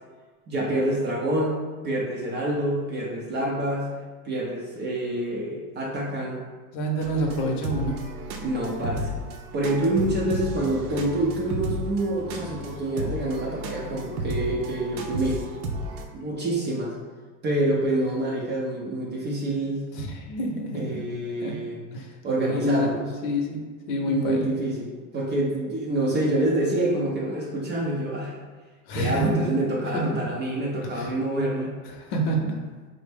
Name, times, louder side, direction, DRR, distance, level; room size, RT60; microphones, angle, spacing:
voice 1, 0.5-3.9 4.2-6.4 8.4-9.1 9.5-15.4 16.1-16.9 17.4-19.9 20.7-21.8 22.2-23.1 24.0-28.3 28.9-31.7, right 1 dB, 25° right, -3 dB, 0.4 m, -27 dB
voice 2, 6.7-8.0 19.9-21.0 21.4-21.5 21.9-22.1 22.5-22.9 23.2-23.6 23.9-24.5 28.9-29.4 29.9-30.2 30.9-31.1 31.9-32.6, equal, 50° left, 2 dB, 0.7 m, -27 dB
sound 1, 7.0-16.1, equal, 80° right, 0.6 m, -33 dB
4.2 x 2.1 x 3.3 m, 1.4 s
hypercardioid pair, 115°, 45 cm